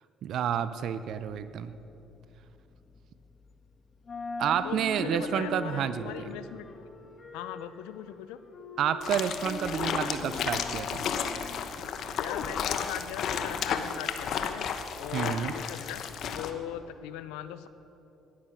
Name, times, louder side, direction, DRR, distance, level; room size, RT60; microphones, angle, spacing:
voice 1, 0.2-1.7 4.4-6.3 8.8-11.1 15.1-15.5, right 9 dB, 65° right, 13 dB, 0.5 m, -30 dB
sound 1, 1.0-3.7 4.0-12.1, left 3 dB, 40° left, 1.4 m, -41 dB
voice 2, 4.6-6.7 7.3-8.4 12.1-14.7 14.9-17.7, left 11 dB, 85° left, 13 dB, 0.5 m, -40 dB
sound 2, 9.0-16.5, left 7 dB, 65° left, 0.9 m, -33 dB
13.0 x 10.5 x 6.2 m, 2.8 s
supercardioid pair, 75°, 0 cm